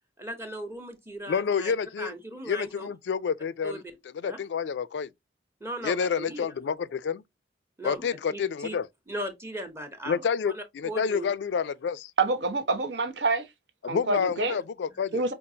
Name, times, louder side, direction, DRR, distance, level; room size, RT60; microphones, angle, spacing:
voice 1, 0.2-2.9 3.6-3.9 4.2-4.4 5.6-6.5 7.8-8.8 9.1-11.3, right 1 dB, 15° right, 0.8 m, -38 dB
voice 2, 1.3-2.1 2.4-3.8 4.1-5.1 5.8-7.2 7.8-8.9 10.1-12.1 13.8-15.2, left 6 dB, 75° left, 0.3 m, -29 dB
voice 3, 12.2-13.5 13.9-14.5 15.1-15.3, right 3 dB, 75° right, 0.8 m, -27 dB
5.1 x 2.4 x 2.7 m
head